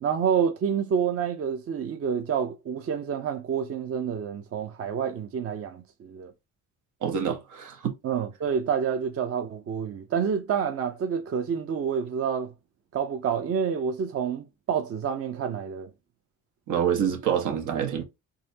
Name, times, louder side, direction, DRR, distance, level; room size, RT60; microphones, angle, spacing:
voice 1, 0.0-6.3 8.0-12.5 12.9-15.9, right 7 dB, 50° right, 0.7 m, -28 dB
voice 2, 7.0-7.8 16.7-18.0, right 8 dB, 80° right, 1.2 m, -26 dB
4.0 x 2.7 x 2.8 m
cardioid pair, 90°, 30 cm